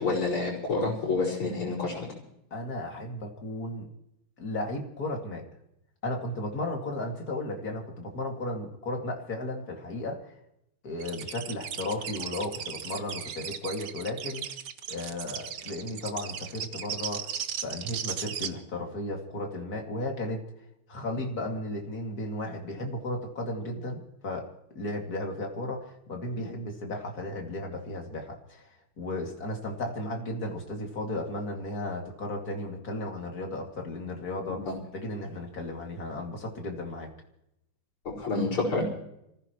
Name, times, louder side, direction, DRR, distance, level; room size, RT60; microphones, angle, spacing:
voice 1, 0.0-2.1 34.5-34.7 38.0-38.8, left 3 dB, 75° left, -8 dB, 5.9 m, -28 dB
voice 2, 2.5-3.9 4.4-5.4 6.0-10.3 10.8-14.5 14.9-17.3 17.6-20.4 20.9-24.5 24.7-28.7 29.0-34.7 34.9-37.1, left 1 dB, 45° left, 1 dB, 2.9 m, -34 dB
sound 1, 11.0-18.5, right 8 dB, 60° right, 1.4 m, -36 dB
27.5 x 15.0 x 3.1 m, 0.81 s
omnidirectional pair, 2.3 m